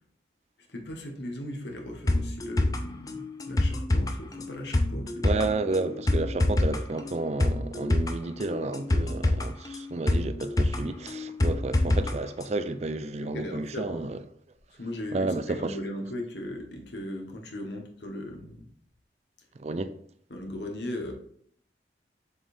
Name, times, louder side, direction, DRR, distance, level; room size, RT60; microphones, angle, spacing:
voice 1, 0.7-5.4 13.3-14.2 14.8-18.6 20.3-21.1, left 1 dB, 75° left, 1.4 m, -38 dB
sound 1, 2.1-12.1 12.4-12.5, left 1 dB, 20° left, 0.5 m, -26 dB
voice 2, 5.2-14.2 15.1-15.8 19.6-19.9, right 3 dB, 35° right, 0.4 m, -31 dB
7.3 x 5.2 x 2.6 m
head